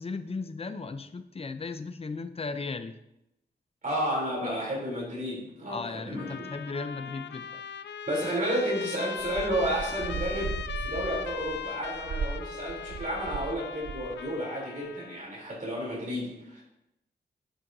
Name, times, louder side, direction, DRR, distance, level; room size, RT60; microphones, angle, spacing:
voice 1, 0.0-3.0 5.7-7.6, left 4 dB, 35° left, 10 dB, 0.5 m, -36 dB
voice 2, 3.8-6.4 8.1-16.6, right 1 dB, 50° right, -5 dB, 3.3 m, -32 dB
Trumpet, 6.1-15.3, left 7 dB, 80° left, 0.5 m, -39 dB
sound 1, 9.2-13.5 13.8-14.2, right 5 dB, 80° right, 0.7 m, -37 dB
9.9 x 7.5 x 2.7 m, 0.86 s
wide cardioid pair, 115°, 18 cm